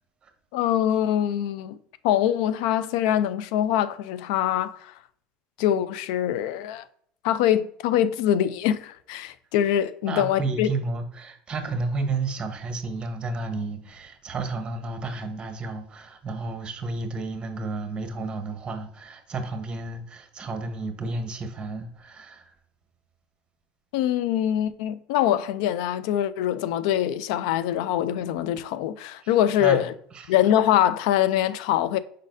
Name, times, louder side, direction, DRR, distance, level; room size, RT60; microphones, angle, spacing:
voice 1, 0.5-1.8 2.0-4.9 5.6-6.8 7.2-10.7 23.9-29.9 30.3-32.0, left 11 dB, 80° left, 0.3 m, -24 dB
voice 2, 10.1-22.5 29.2-30.4, right 3 dB, 25° right, 0.9 m, -32 dB
5.2 x 4.0 x 2.5 m
supercardioid pair, 100°, 4 cm